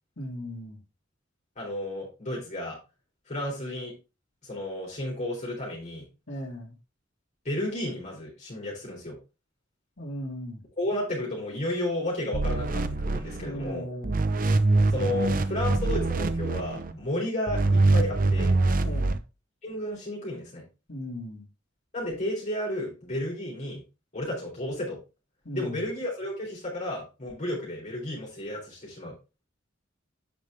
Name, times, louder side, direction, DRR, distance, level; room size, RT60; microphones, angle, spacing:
voice 1, 0.2-0.8 6.3-6.8 10.0-10.6 13.4-14.3 18.8-19.2 20.9-21.4 25.4-25.8, equal, 65° left, -1 dB, 2.5 m, -37 dB
voice 2, 1.6-2.8 3.3-3.9 4.4-6.1 7.4-9.2 10.8-13.9 14.9-18.6 19.6-20.6 21.9-23.8 24.1-25.0 25.5-29.1, left 1 dB, 40° left, -4 dB, 3.9 m, -32 dB
sound 1, 12.3-13.7 14.0-16.9 17.5-19.2, right 2 dB, 45° right, 0.6 m, -24 dB
8.6 x 5.4 x 3.5 m, 0.29 s
head